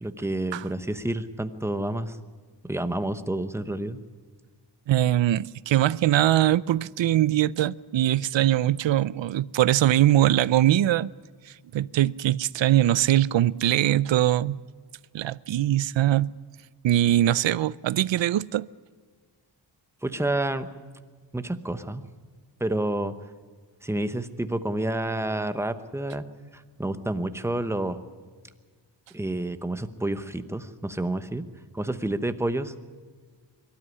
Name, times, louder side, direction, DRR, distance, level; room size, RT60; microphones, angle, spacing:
voice 1, 0.0-2.2 2.6-4.0 20.0-20.7 21.3-22.0 22.6-23.1 23.8-26.2 26.5-28.0 29.1-31.4 31.7-32.7, right 1 dB, 5° right, 0.9 m, -29 dB
voice 2, 4.9-11.1 11.7-14.6 15.1-16.3 16.8-18.7, right 13 dB, 80° right, 0.6 m, -22 dB
23.5 x 13.0 x 9.8 m
wide cardioid pair, 115°, 44 cm